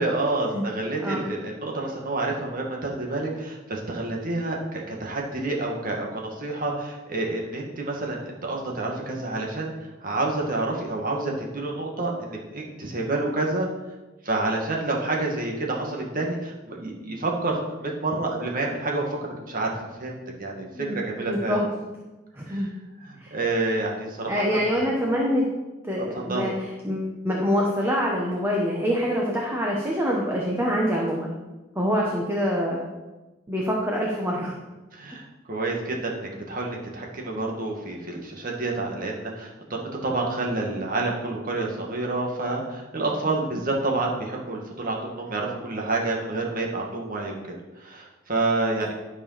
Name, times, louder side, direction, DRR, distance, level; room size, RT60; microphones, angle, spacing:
voice 1, 0.0-13.7 14.2-19.7 20.0-21.6 22.5-22.7 23.0-24.4 26.1-26.5 34.9-47.4 47.8-48.9, right 2 dB, 45° right, -1 dB, 1.9 m, -28 dB
voice 2, 20.7-21.7 22.3-22.7 23.2-23.3 24.3-25.4 25.8-26.5 26.8-31.3 31.7-32.8 33.5-34.6, equal, 10° right, -3 dB, 1.3 m, -25 dB
12.0 x 5.1 x 5.8 m, 1.1 s
head